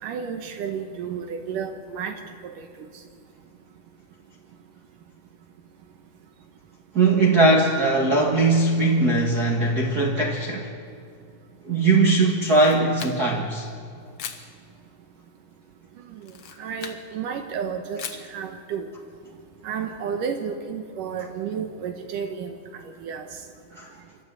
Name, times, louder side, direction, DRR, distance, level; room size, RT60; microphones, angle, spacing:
voice 1, 0.0-2.9 16.1-16.3 16.6-18.0 18.3-18.9 19.6-22.6 23.0-23.3, right 7 dB, 75° right, 6 dB, 2.7 m, -32 dB
voice 2, 6.9-10.7 11.6-13.7 23.7-23.9, right 3 dB, 40° right, -1 dB, 1.6 m, -20 dB
Camera, 12.3-13.5 14.2-14.5 16.2-17.0 18.0-18.3, left 7 dB, 60° left, 1.4 m, -38 dB
26.0 x 13.0 x 9.0 m, 2.3 s
omnidirectional pair, 4.0 m